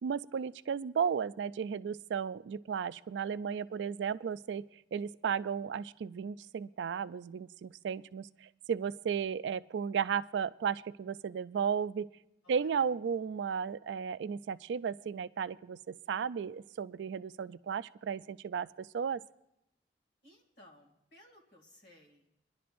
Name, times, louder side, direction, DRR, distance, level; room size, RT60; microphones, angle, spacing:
voice 1, 0.0-4.7 4.9-12.1 12.5-19.2, right 7 dB, 85° right, 16 dB, 0.3 m, -34 dB
voice 2, 3.5-3.9 12.4-12.9 20.2-22.3, left 1 dB, 60° left, 0 dB, 2.3 m, -60 dB
24.0 x 11.0 x 2.6 m, 0.84 s
head